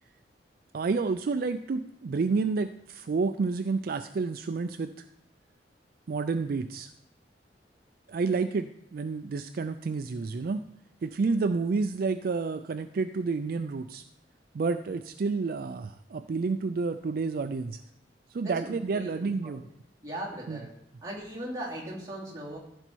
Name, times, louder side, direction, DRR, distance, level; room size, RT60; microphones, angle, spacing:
voice 1, 0.7-5.1 6.1-6.9 8.1-10.6 11.0-14.0 14.5-17.8 18.3-19.6 20.5-20.6, right 4 dB, 55° right, 9 dB, 0.4 m, -30 dB
voice 2, 18.4-19.1 19.4-19.6 20.0-20.7 21.0-22.6, right 1 dB, 20° right, -5 dB, 2.8 m, -38 dB
14.5 x 5.4 x 4.6 m, 0.76 s
head